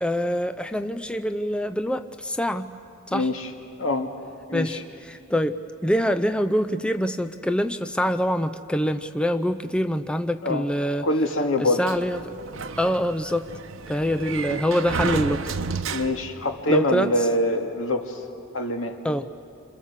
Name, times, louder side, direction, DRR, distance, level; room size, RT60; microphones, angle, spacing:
voice 1, 0.0-2.7 3.1-3.3 4.5-11.1 11.6-12.3 12.8-13.5 13.9-15.5 16.7-17.1 19.0-19.3, equal, 5° left, 9 dB, 0.5 m, -25 dB
voice 2, 3.1-3.5 3.8-4.1 4.5-4.8 10.4-10.6 11.0-11.8 15.9-18.2 18.5-18.9, left 1 dB, 80° left, 4 dB, 2.2 m, -24 dB
Sliding door, 11.8-16.5, right 4 dB, 80° right, 1.0 m, -31 dB
27.5 x 27.0 x 7.4 m, 2.5 s
head